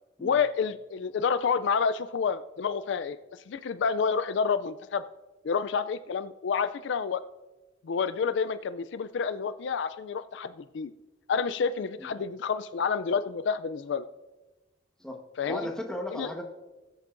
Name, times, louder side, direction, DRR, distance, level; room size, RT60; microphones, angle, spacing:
voice 1, 0.2-5.0 5.4-7.2 7.8-10.9 11.3-14.1 15.4-15.7 16.1-16.3, left 6 dB, 65° left, 13 dB, 0.4 m, -29 dB
voice 2, 15.4-16.4, left 1 dB, 5° left, 1 dB, 1.2 m, -35 dB
19.5 x 8.2 x 2.6 m, 1.1 s
head